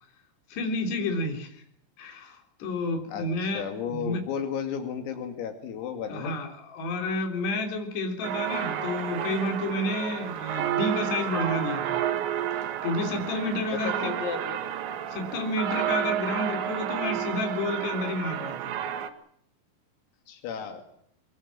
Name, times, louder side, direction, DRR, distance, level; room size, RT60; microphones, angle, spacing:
voice 1, 0.5-1.6 2.0-4.2 6.1-12.0 12.8-14.1 15.1-18.8, left 2 dB, 55° left, 5 dB, 5.6 m, -30 dB
voice 2, 3.5-6.4 13.7-14.6 20.3-20.8, left 7 dB, 85° left, 5 dB, 5.2 m, -33 dB
sound 1, 8.2-19.1, right 10 dB, 65° right, 3.6 m, -31 dB
23.5 x 22.5 x 7.5 m, 0.68 s
omnidirectional pair, 6.0 m